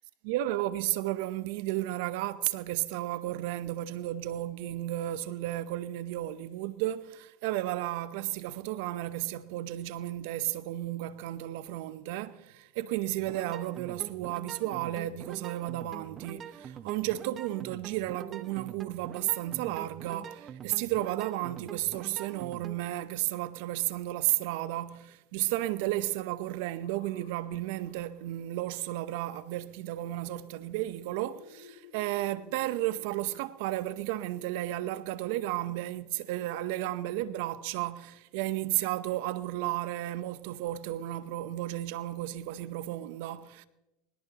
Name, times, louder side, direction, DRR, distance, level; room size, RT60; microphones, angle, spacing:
voice 1, 0.2-43.7, right 15 dB, 70° right, 0.8 m, -33 dB
sound 1, 13.2-22.8, right 8 dB, 35° right, 1.0 m, -44 dB
sound 2, 26.8-33.4, left 6 dB, 75° left, 6.8 m, -58 dB
21.5 x 20.0 x 3.0 m
hypercardioid pair, 95°, 0 cm